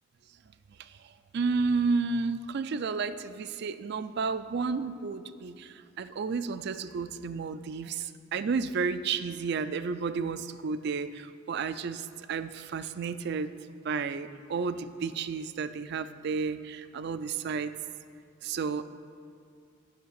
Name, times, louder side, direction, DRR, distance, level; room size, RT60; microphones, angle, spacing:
voice 1, 1.3-13.5 13.8-17.7 18.4-18.8, right 5 dB, 55° right, 13 dB, 0.4 m, -32 dB
9.4 x 5.8 x 6.4 m, 2.3 s
head